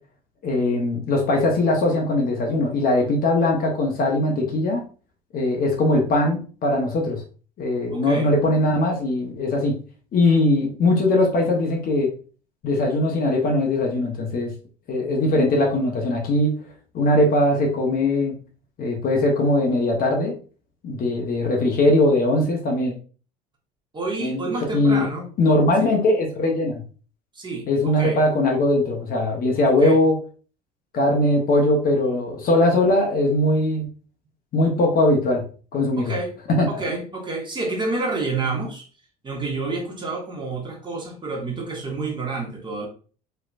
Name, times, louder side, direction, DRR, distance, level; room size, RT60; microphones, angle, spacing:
voice 1, 0.4-4.8 5.3-7.2 7.6-9.8 10.1-12.1 12.6-14.5 14.9-16.5 16.9-18.3 18.8-20.3 20.8-22.9 24.2-25.0 25.4-26.8 27.7-30.1 30.9-33.8 34.5-35.4 35.7-36.1 36.5-36.8, left 1 dB, 45° left, 0 dB, 0.9 m, -20 dB
voice 2, 4.2-4.5 7.9-8.3 23.9-25.3 25.8-25.9 27.3-28.2 29.7-30.0 36.0-36.3 36.7-38.9 39.2-42.9, right 3 dB, 20° right, -1 dB, 1.3 m, -29 dB
3.3 x 2.9 x 2.4 m, 0.39 s
hypercardioid pair, 75°, 21 cm